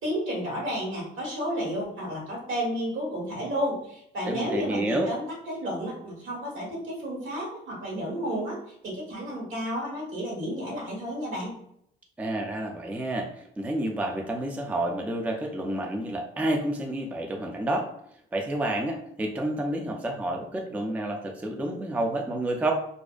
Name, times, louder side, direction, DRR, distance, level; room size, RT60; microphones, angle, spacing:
voice 1, 0.0-8.6 8.8-11.6, equal, 75° right, -3 dB, 1.3 m, -32 dB
voice 2, 4.3-5.1 12.2-17.9 18.3-22.7, right 1 dB, 10° right, 2 dB, 0.3 m, -29 dB
2.5 x 2.1 x 2.3 m, 0.71 s
cardioid pair, 90°, 20 cm